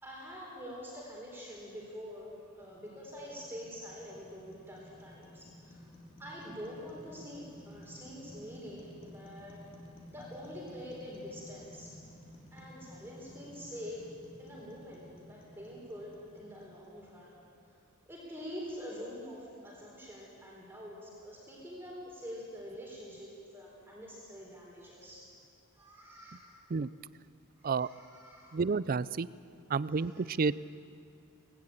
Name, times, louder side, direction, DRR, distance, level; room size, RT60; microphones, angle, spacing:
voice 1, 0.0-5.9 6.2-9.6 10.1-12.0 12.5-14.0 14.4-17.4 18.1-25.3 25.7-26.6 27.6-28.6 29.8-30.3, equal, 10° right, -4 dB, 3.8 m, -46 dB
sound 1, 2.4-17.6, left 1 dB, 25° left, 3.6 m, -54 dB
voice 2, 28.5-29.3 29.7-30.5, right 4 dB, 40° right, 18 dB, 0.4 m, -30 dB
19.5 x 16.5 x 8.8 m, 2.4 s
head